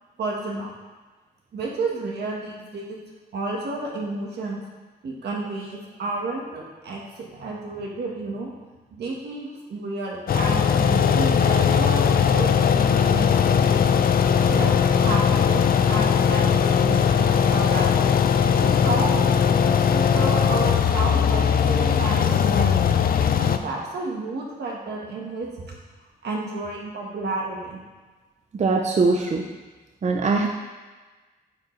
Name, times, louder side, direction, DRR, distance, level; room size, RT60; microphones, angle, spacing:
voice 1, 0.2-0.7 1.5-3.0 3.3-4.6 5.0-8.5 8.9-13.9 14.4-17.3 17.5-18.0 18.6-22.8 23.3-25.8 26.2-27.8, right 3 dB, 85° right, -1 dB, 1.4 m, -31 dB
sound 1, 10.3-23.6, left 7 dB, 60° left, 0.4 m, -19 dB
voice 2, 28.5-29.4 30.0-30.5, right 3 dB, 45° right, 1 dB, 0.6 m, -21 dB
9.3 x 4.7 x 3.2 m, 1.3 s
cardioid pair, 100°, 17 cm